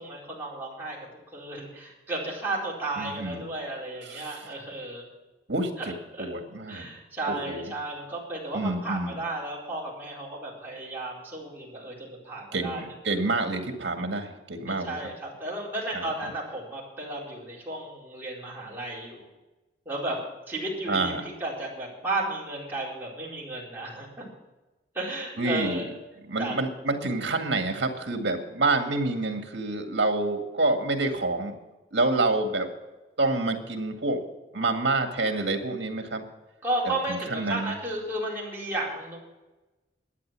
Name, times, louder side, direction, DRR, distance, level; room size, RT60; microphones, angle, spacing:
voice 1, 0.0-5.0 5.8-6.3 6.7-13.1 14.7-19.3 19.9-20.2 20.5-24.2 24.9-25.8 26.4-26.6 36.6-39.2, right 2 dB, 10° right, -6 dB, 4.4 m, -33 dB
voice 2, 3.0-3.4 4.1-4.4 5.5-5.7 6.2-6.9 7.3-7.7 8.5-9.2 12.5-15.0 15.9-16.1 20.9-21.2 25.4-25.8 26.3-31.6 31.9-32.7 33.2-34.2 34.5-36.2 36.8-37.8, right 2 dB, 70° right, 5 dB, 1.9 m, -28 dB
12.5 x 9.4 x 7.6 m, 1.1 s
head